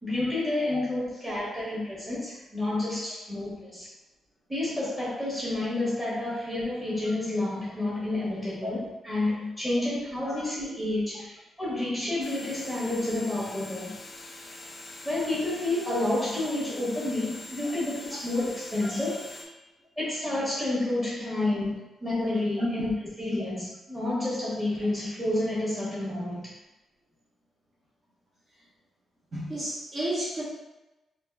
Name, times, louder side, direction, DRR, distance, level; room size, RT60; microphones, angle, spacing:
voice 1, 0.0-3.9 4.5-13.9 15.0-19.5 20.0-21.7 22.0-22.9 23.2-26.5, left 2 dB, 5° right, -9 dB, 1.5 m, -30 dB
sound 1, 12.2-19.5, left 2 dB, 25° left, 0.3 m, -43 dB
voice 2, 29.3-30.4, right 1 dB, 30° right, -6 dB, 1.0 m, -31 dB
3.9 x 2.5 x 2.3 m, 1.0 s
wide cardioid pair, 175°, 0 cm